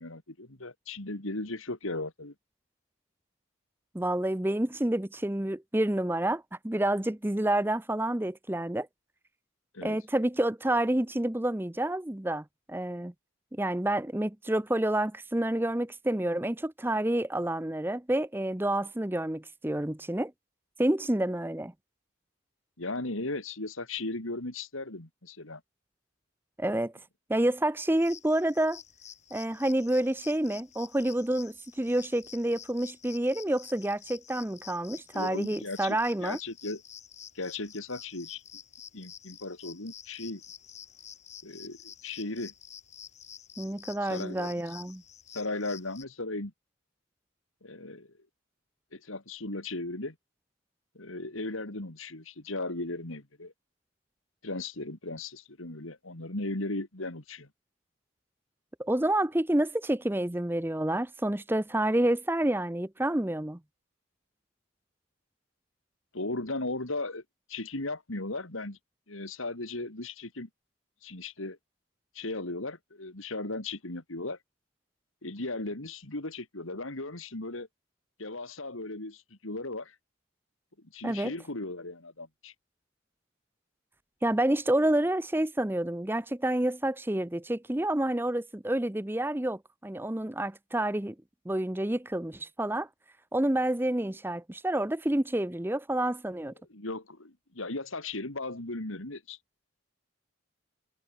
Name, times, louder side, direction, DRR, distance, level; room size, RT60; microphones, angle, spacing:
voice 1, 0.0-2.3 9.7-10.0 22.8-25.6 35.1-36.8 37.3-38.4 38.9-40.4 41.4-42.5 44.0-44.6 45.3-46.5 47.6-48.1 48.9-50.2 50.9-53.5 54.4-57.5 66.1-67.2 67.5-68.8 69.1-70.5 71.0-71.6 72.1-74.4 75.2-77.7 78.2-80.0 80.8-82.5 96.7-99.4, left 2 dB, 75° left, 3.0 m, -37 dB
voice 2, 3.9-8.9 9.8-13.1 13.5-20.3 20.8-21.7 26.6-26.9 27.3-28.8 29.3-36.4 43.6-45.0 58.8-63.6 81.0-81.3 84.2-91.1 91.5-92.9 93.3-96.5, right 1 dB, 10° right, 0.6 m, -29 dB
sound 1, 28.0-46.0, left 9 dB, 35° left, 4.1 m, -49 dB
head